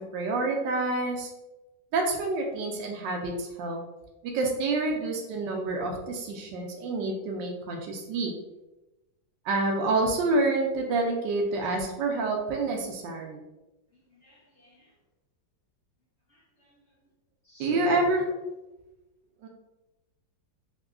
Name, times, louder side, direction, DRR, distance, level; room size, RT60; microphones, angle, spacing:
voice 1, 0.1-1.3 1.9-3.8 4.3-8.3 9.4-13.4 17.6-18.3 19.4-19.5, right 2 dB, 75° right, 1 dB, 1.2 m, -28 dB
voice 2, 14.2-14.9 16.3-16.8 17.4-18.0, left 1 dB, 40° left, -8 dB, 1.2 m, -42 dB
3.6 x 2.8 x 2.3 m, 1.0 s
omnidirectional pair, 2.0 m